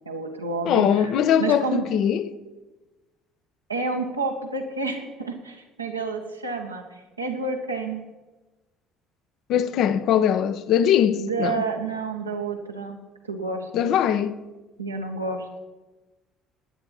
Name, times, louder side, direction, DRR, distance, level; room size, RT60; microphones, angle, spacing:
voice 1, 0.0-1.1 1.4-1.9 3.7-8.0 11.1-13.0 13.3-13.9 14.8-15.6, right 3 dB, 90° right, 1.4 m, -30 dB
voice 2, 0.6-2.3 9.5-11.6 13.7-14.4, left 9 dB, 55° left, 0.8 m, -21 dB
18.0 x 9.9 x 4.4 m
figure-of-eight pair, 55°, 0 cm